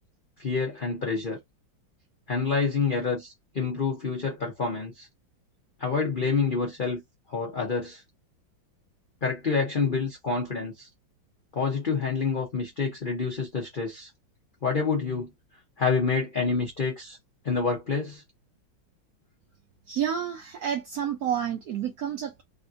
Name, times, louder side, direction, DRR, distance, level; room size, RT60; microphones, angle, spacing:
voice 1, 0.4-1.4 2.3-5.1 5.8-7.0 7.3-8.0 9.2-10.9 11.5-14.1 14.6-15.3 15.8-17.2 17.4-18.2, left 5 dB, 70° left, 0.4 m, -27 dB
voice 2, 19.9-22.4, right 9 dB, 75° right, 0.8 m, -30 dB
3.4 x 2.6 x 2.5 m
omnidirectional pair, 2.2 m